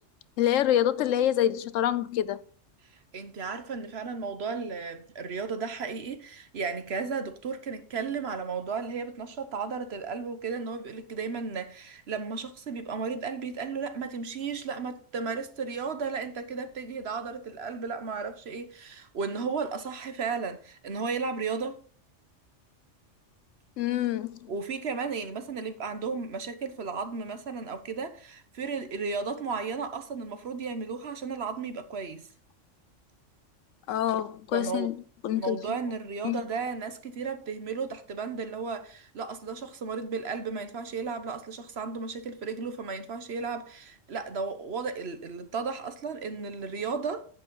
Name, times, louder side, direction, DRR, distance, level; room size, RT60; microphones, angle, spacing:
voice 1, 0.4-2.4 23.8-24.5 33.9-35.0 35.2-35.6 36.2-36.4, left 11 dB, 85° left, 1.0 m, -26 dB
voice 2, 3.1-21.8 24.5-32.3 34.5-34.9 35.4-47.3, right 5 dB, 60° right, 1.2 m, -34 dB
10.5 x 8.4 x 3.8 m
omnidirectional pair, 1.3 m